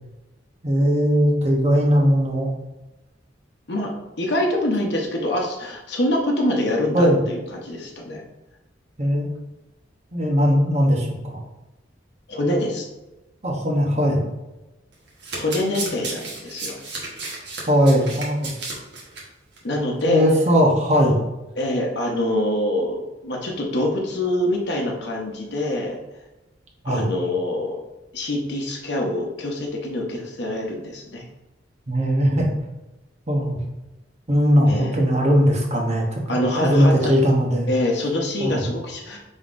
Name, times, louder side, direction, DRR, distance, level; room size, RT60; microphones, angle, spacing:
voice 1, 0.6-2.6 6.9-7.2 9.0-9.3 10.1-11.4 13.4-14.3 17.7-18.5 20.0-21.2 26.8-27.1 31.9-32.5 33.3-33.6 34.3-37.7 38.4-38.6, equal, 35° right, -1 dB, 0.8 m, -19 dB
voice 2, 4.2-8.2 12.3-12.9 15.4-16.7 19.6-20.2 21.6-26.0 26.8-27.8 28.1-31.2 34.7-35.1 36.3-37.1 37.7-39.2, left 1 dB, 60° left, 0 dB, 0.9 m, -25 dB
Domestic sounds home sounds, 14.9-19.2 19.6-19.7 20.0-20.1, right 3 dB, 60° right, 1.2 m, -33 dB
5.4 x 3.6 x 2.5 m, 1.0 s
head